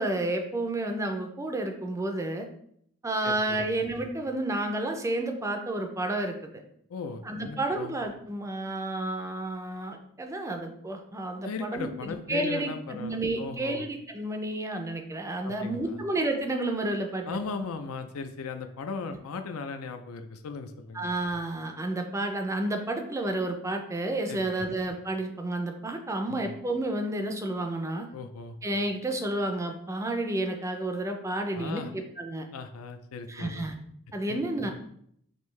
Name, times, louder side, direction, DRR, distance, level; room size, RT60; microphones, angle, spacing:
voice 1, 0.0-2.5 3.0-6.6 7.3-11.9 12.3-17.4 20.9-28.1 28.6-32.5 33.3-33.8 34.1-34.7, right 2 dB, 15° right, 4 dB, 0.4 m, -31 dB
voice 2, 3.2-3.7 6.9-8.0 11.4-13.8 15.4-16.0 17.3-21.1 24.3-24.4 26.3-26.5 28.1-28.6 31.5-31.9 32.5-33.7 34.3-34.4, left 4 dB, 75° left, 7 dB, 0.4 m, -37 dB
5.3 x 2.7 x 3.1 m, 0.69 s
head